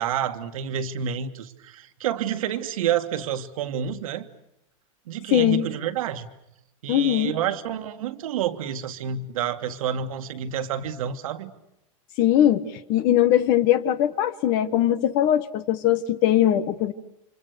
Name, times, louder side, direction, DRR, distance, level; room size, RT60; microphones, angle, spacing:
voice 1, 0.0-4.3 5.1-6.3 6.8-11.5, right 9 dB, 80° right, 9 dB, 1.9 m, -29 dB
voice 2, 5.3-5.6 6.9-7.3 12.2-16.9, left 11 dB, 55° left, 14 dB, 1.4 m, -21 dB
30.0 x 26.0 x 6.7 m, 0.83 s
supercardioid pair, 125°, 17 cm